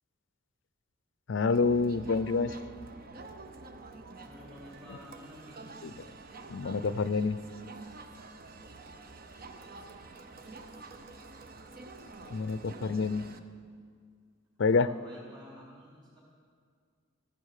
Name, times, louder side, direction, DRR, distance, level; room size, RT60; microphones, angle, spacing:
voice 1, 1.3-2.6 5.8-5.9 6.5-7.4 12.3-13.2 14.6-14.9, left 4 dB, 65° left, 15 dB, 0.5 m, -27 dB
Crowd, 1.5-13.4, right 3 dB, 50° right, 0.7 m, -48 dB
voice 2, 4.2-5.8 14.7-16.2, equal, 25° right, -6 dB, 4.1 m, -51 dB
15.0 x 10.5 x 6.6 m, 2.1 s
head